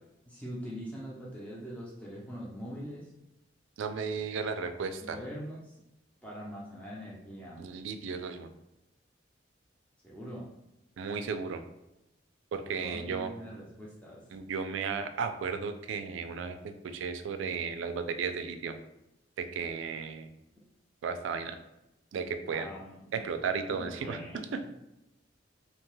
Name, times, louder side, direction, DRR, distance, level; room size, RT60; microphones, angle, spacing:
voice 1, 0.2-3.1 5.0-5.8 6.2-7.6 10.0-10.5 12.6-14.2 22.5-23.3 23.7-24.4, equal, 5° left, -5 dB, 0.4 m, -43 dB
voice 2, 3.8-5.2 7.6-8.5 11.0-11.6 12.5-13.3 14.3-18.8 19.4-20.3 21.0-21.6 22.1-22.7 23.1-24.2 24.5-24.7, right 5 dB, 85° right, 9 dB, 0.3 m, -34 dB
2.7 x 2.2 x 3.0 m, 0.88 s
head